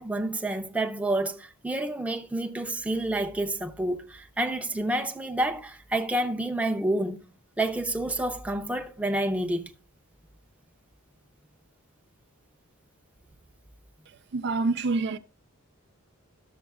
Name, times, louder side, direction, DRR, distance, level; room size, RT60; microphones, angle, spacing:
voice 1, 0.0-7.2 7.6-9.7, right 1 dB, 5° right, 0.6 m, -29 dB
voice 2, 14.3-15.2, right 3 dB, 55° right, 0.4 m, -26 dB
12.5 x 7.0 x 2.3 m
head